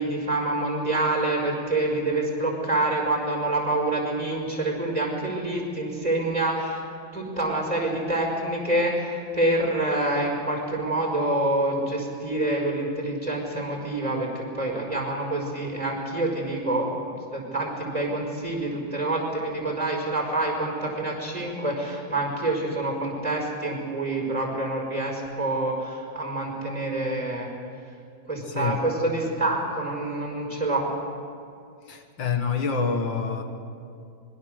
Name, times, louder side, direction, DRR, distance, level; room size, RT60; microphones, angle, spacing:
voice 1, 0.0-6.8 7.1-16.9 17.3-27.5 28.3-30.9, right 2 dB, 20° right, 0 dB, 5.3 m, -27 dB
voice 2, 28.4-28.8 31.9-33.4, left 5 dB, 75° left, 5 dB, 2.3 m, -27 dB
25.5 x 22.0 x 6.6 m, 2.5 s
omnidirectional pair, 2.1 m